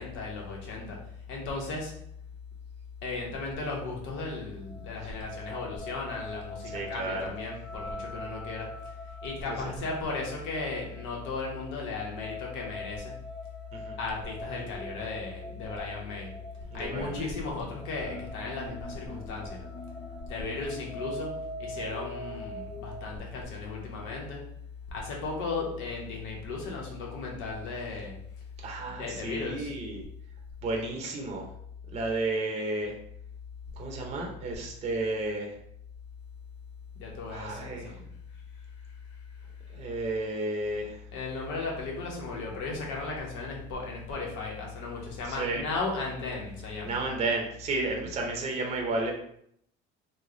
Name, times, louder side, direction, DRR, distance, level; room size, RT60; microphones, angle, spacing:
voice 1, 0.0-2.0 3.0-8.9 9.2-13.2 14.0-16.4 16.7-19.7 20.3-24.4 24.9-28.2 28.9-29.7 36.9-38.0 41.1-47.0, left 3 dB, 90° left, -1 dB, 1.0 m, -35 dB
sound 1, 4.6-23.1, left 1 dB, 30° left, 1.3 m, -43 dB
voice 2, 6.6-7.3 9.6-9.7 13.7-14.0 16.7-17.3 28.6-30.0 30.6-31.5 31.9-32.9 33.8-35.5 37.3-38.0 39.7-41.0 45.2-45.6 46.8-49.1, right 2 dB, 35° right, 1 dB, 0.6 m, -32 dB
3.1 x 2.2 x 3.8 m, 0.70 s
cardioid pair, 145°, 20 cm